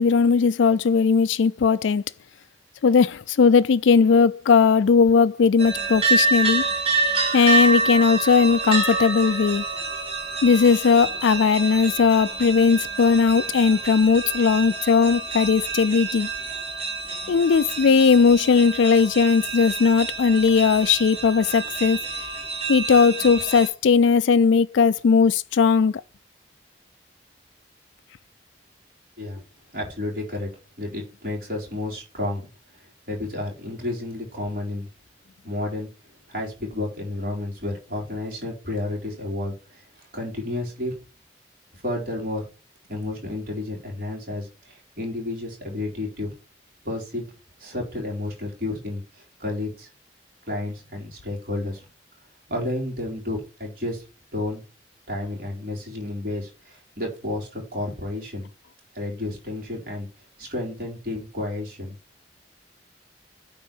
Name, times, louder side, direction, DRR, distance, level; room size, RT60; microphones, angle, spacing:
voice 1, 0.0-2.0 2.8-6.7 7.3-9.6 10.4-16.3 17.3-22.0 22.7-26.0, left 5 dB, 90° left, 0.4 m, -18 dB
sound 1, 5.6-23.7, right 3 dB, 30° right, 2.6 m, -27 dB
voice 2, 29.7-30.5 30.8-32.5 33.1-34.9 35.4-35.9 36.3-39.9 40.1-40.9 41.8-42.5 42.9-46.3 46.8-47.2 47.6-49.9 50.5-51.8 52.5-54.0 54.3-54.6 55.1-58.5 58.9-60.1 60.4-61.9, left 2 dB, 50° right, 3.8 m, -31 dB
9.2 x 3.8 x 6.1 m
head